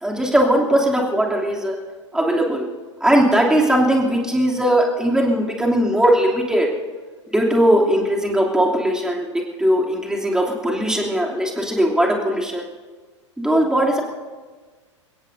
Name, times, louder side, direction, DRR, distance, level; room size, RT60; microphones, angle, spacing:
voice 1, 0.0-1.8 2.1-2.7 3.0-6.7 7.3-9.3 9.6-12.6 13.4-14.0, right 1 dB, 5° right, -1 dB, 2.8 m, -19 dB
29.0 x 16.5 x 2.7 m, 1.4 s
figure-of-eight pair, 90°, 16 cm